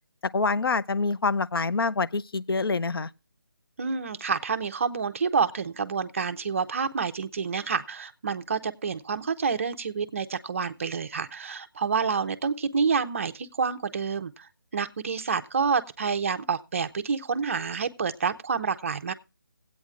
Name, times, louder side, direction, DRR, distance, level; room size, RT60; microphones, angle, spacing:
voice 1, 0.3-3.1, left 4 dB, 90° left, 0.4 m, -26 dB
voice 2, 3.8-19.1, right 5 dB, 35° right, 0.5 m, -28 dB
19.0 x 8.3 x 2.4 m
figure-of-eight pair, 165°, 12 cm